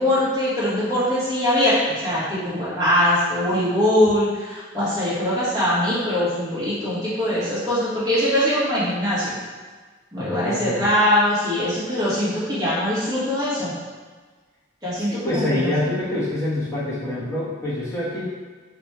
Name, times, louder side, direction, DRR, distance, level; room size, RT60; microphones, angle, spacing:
voice 1, 0.0-9.3 10.1-13.7 14.8-15.7, left 1 dB, 20° right, -10 dB, 1.4 m, -22 dB
voice 2, 10.2-10.9 15.1-18.3, left 1 dB, 15° left, -11 dB, 1.3 m, -26 dB
3.5 x 2.7 x 4.2 m, 1.4 s
head